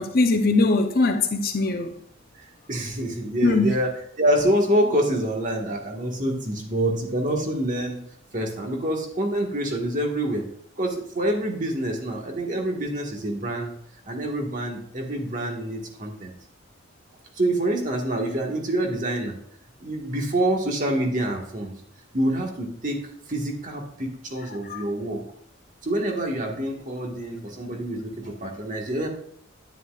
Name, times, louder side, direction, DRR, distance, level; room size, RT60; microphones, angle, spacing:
voice 1, 0.0-2.0 3.4-3.7 24.6-24.8, left 3 dB, 45° left, 0.7 m, -21 dB
voice 2, 2.3-3.9 4.2-8.0 8.3-10.4 10.8-13.7 14.1-16.3 17.4-19.4 19.8-21.7 22.1-25.2 25.8-29.1, right 1 dB, 40° right, 1.6 m, -26 dB
9.8 x 9.7 x 2.5 m
head